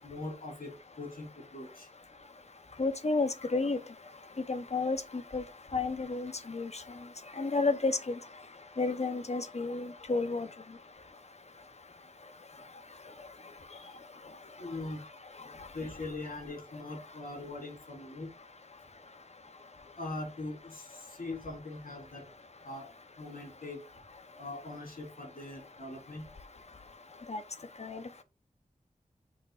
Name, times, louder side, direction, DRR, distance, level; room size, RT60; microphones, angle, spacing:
voice 1, 0.0-0.7 1.0-1.9 14.6-15.0 15.7-18.3 20.0-22.2 22.6-22.9 23.2-23.8 24.4-26.3, left 2 dB, 85° left, 3.3 m, -41 dB
voice 2, 2.8-3.8 4.5-5.0 5.3-5.4 5.7-6.8 7.4-8.1 8.8-10.5 27.3-27.4 27.8-28.2, left 3 dB, 50° left, 1.0 m, -31 dB
6.4 x 3.3 x 4.9 m
wide cardioid pair, 60°, 14 cm